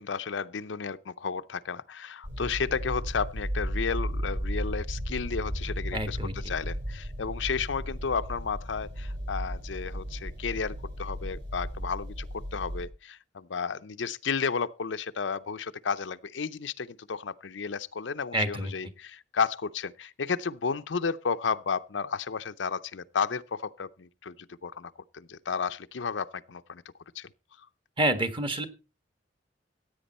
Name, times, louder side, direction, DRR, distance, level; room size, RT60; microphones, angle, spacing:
voice 1, 0.0-12.3 12.5-26.8 27.2-27.3, left 5 dB, 85° left, 0.6 m, -33 dB
sound 1, 2.2-12.8, equal, 70° right, 3.4 m, -35 dB
voice 2, 5.9-6.3 18.3-18.7 28.0-28.7, right 1 dB, 30° right, 1.4 m, -27 dB
15.5 x 8.8 x 4.2 m
head